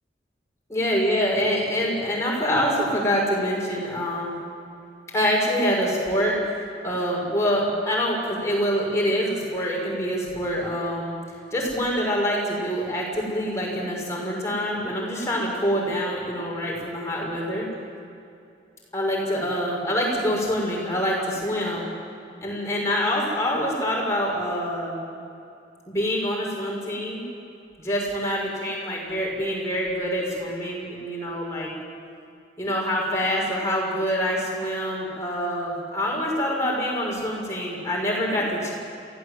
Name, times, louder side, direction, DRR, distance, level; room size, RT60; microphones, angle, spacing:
voice 1, 0.7-4.4 5.1-6.4 6.8-11.1 11.5-17.6 18.9-21.9 22.4-25.0 25.9-27.2 27.8-31.7 32.6-38.7, equal, 15° left, -3 dB, 6.2 m, -25 dB
23.5 x 17.0 x 7.9 m, 2.5 s
head